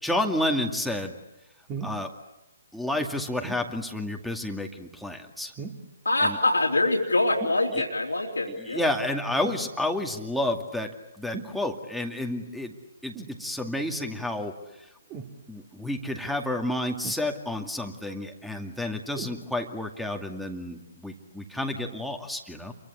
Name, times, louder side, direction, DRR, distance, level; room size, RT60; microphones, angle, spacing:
voice 1, 0.0-1.1 1.8-2.1 2.7-5.5 6.2-6.4 8.7-12.7 13.0-13.1 13.4-14.5 15.5-22.7, left 1 dB, ahead, 1 dB, 2.3 m, -30 dB
sound 1, 1.7-2.0 3.4-3.7 5.6-5.9 7.4-7.6 9.4-9.7 11.3-11.6 13.1-13.4 15.1-15.4 17.0-17.6 19.1-19.4 20.2-20.3, right 5 dB, 25° right, 3.1 m, -38 dB
voice 2, 6.0-8.9, left 2 dB, 85° left, -3 dB, 3.3 m, -24 dB
29.5 x 23.5 x 8.5 m, 0.97 s
figure-of-eight pair, 135°, 0 cm